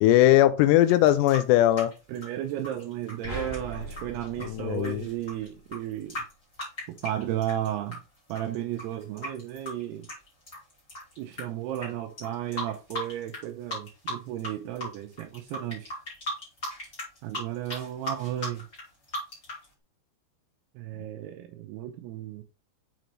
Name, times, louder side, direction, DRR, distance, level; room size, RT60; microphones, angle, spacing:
voice 1, 0.0-1.9 4.4-5.0, left 14 dB, 85° left, 2.6 m, -20 dB
sound 1, 0.8-8.0 8.3-11.4 11.7-11.9 12.2-13.4 13.7-14.5 14.8-19.6, equal, 20° left, 2.5 m, -37 dB
voice 2, 2.1-6.2 7.0-8.0 8.3-10.1 11.2-15.9 17.2-18.7 20.8-22.4, right 12 dB, 85° right, 2.4 m, -34 dB
sound 2, 3.2-5.7, right 1 dB, 40° left, 2.9 m, -39 dB
6.8 x 5.1 x 3.1 m
omnidirectional pair, 5.1 m